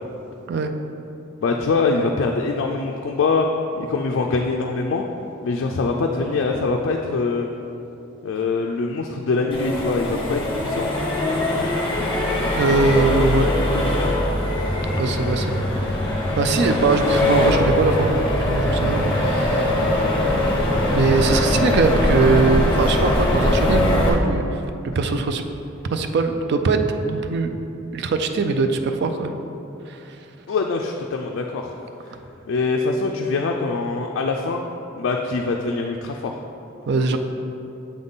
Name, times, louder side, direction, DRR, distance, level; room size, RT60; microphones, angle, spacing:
voice 1, 1.4-3.5 3.7-5.1 5.4-7.5 8.2-10.9 13.4-13.5 13.8-13.9 19.7-19.9 30.5-31.7 32.5-34.6 35.0-36.3, left 3 dB, 60° left, 1 dB, 0.3 m, -23 dB
Accelerating revving vroom, 9.5-24.1, left 1 dB, 25° left, 0.9 m, -21 dB
voice 2, 12.5-13.5 15.0-16.0 16.4-19.9 20.9-24.6 25.0-25.4 25.9-27.5 27.9-29.4 29.9-30.0 36.9-37.2, right 3 dB, 55° right, 7 dB, 0.4 m, -21 dB
7.6 x 4.0 x 3.6 m, 2.9 s
head